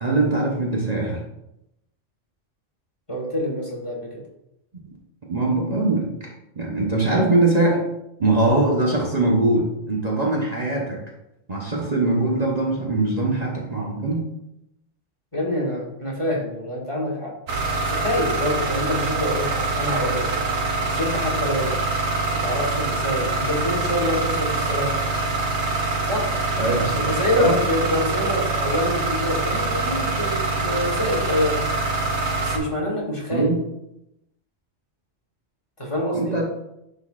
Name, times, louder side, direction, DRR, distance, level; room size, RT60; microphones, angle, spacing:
voice 1, 0.0-1.2 5.3-7.8 8.2-11.0 11.5-14.2 26.6-27.1 27.4-27.6 33.3-33.6 36.1-36.4, right 2 dB, 35° right, -3 dB, 1.0 m, -22 dB
voice 2, 3.1-4.2 15.3-17.3 17.8-20.4 20.9-21.7 22.3-24.9 26.0-26.3 26.9-31.6 32.4-33.5 35.8-36.3, left 1 dB, 25° left, -3 dB, 1.3 m, -26 dB
sound 1, 17.5-32.6, right 3 dB, 70° right, 1.2 m, -24 dB
10.0 x 3.9 x 2.5 m, 0.84 s
omnidirectional pair, 1.2 m